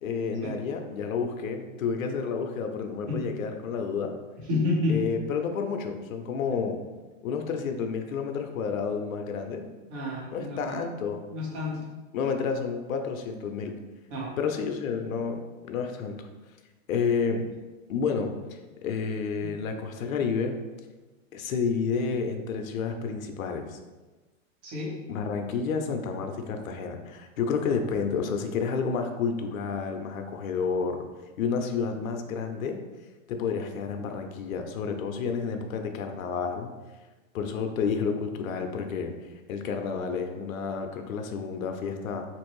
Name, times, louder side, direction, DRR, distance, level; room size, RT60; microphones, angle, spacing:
voice 1, 0.0-4.2 4.9-6.8 7.2-9.7 10.3-11.2 12.1-13.7 14.4-16.3 16.9-17.5 17.9-20.5 21.3-23.8 25.1-31.0 31.4-32.8 33.3-36.7 37.3-39.1 39.5-42.3, left 5 dB, 80° left, 5 dB, 0.6 m, -30 dB
voice 2, 4.5-5.0 9.9-10.8 11.3-11.8 14.1-14.3 19.4-19.5 24.6-24.9, left 2 dB, 55° right, -4 dB, 1.2 m, -29 dB
3.0 x 2.6 x 3.0 m, 1.2 s
hypercardioid pair, 140°, 41 cm